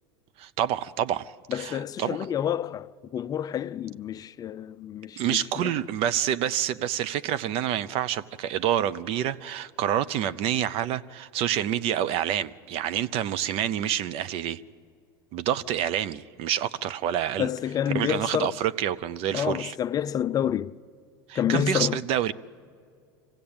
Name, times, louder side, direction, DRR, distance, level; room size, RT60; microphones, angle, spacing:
voice 1, 0.4-2.2 5.2-14.6 15.3-17.5 17.9-19.7 21.3-22.3, right 10 dB, 50° right, 0.7 m, -28 dB
voice 2, 1.5-5.8 17.4-18.6 19.3-20.7 21.3-22.0, left 9 dB, 30° left, 0.4 m, -29 dB
25.0 x 16.0 x 8.7 m
hypercardioid pair, 95°, 12 cm